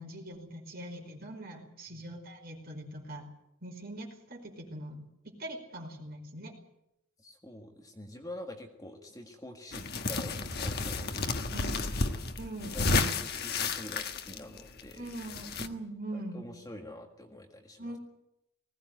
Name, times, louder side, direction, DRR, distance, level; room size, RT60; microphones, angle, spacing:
voice 1, 0.0-3.3 3.6-5.0 5.4-6.5 11.5-11.8 12.4-13.1 15.0-16.5 17.8-18.0, right 1 dB, 45° right, 2 dB, 5.1 m, -42 dB
voice 2, 7.2-11.6 12.7-15.1 16.1-18.0, left 1 dB, 15° left, 3 dB, 1.8 m, -46 dB
sound 1, 9.7-15.7, left 3 dB, 45° left, 1.4 m, -32 dB
20.0 x 17.5 x 9.2 m, 0.82 s
head